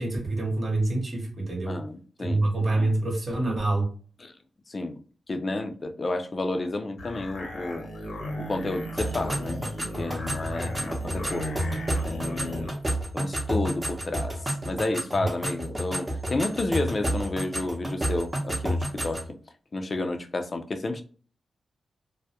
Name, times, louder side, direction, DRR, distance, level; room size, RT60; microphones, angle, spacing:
voice 1, 0.0-1.8 2.3-3.9 15.2-15.3, right 2 dB, 45° right, 0.9 m, -26 dB
voice 2, 1.6-2.5 4.2-4.3 4.7-5.0 5.3-7.9 8.4-12.7 13.1-19.4 19.7-21.0, left 2 dB, 40° left, 0.4 m, -31 dB
sound 1, 7.0-12.8, equal, 75° left, 0.8 m, -36 dB
sound 2, 9.0-19.3, right 1 dB, 20° right, 0.7 m, -31 dB
2.2 x 2.0 x 2.7 m
cardioid pair, 80°, 0 cm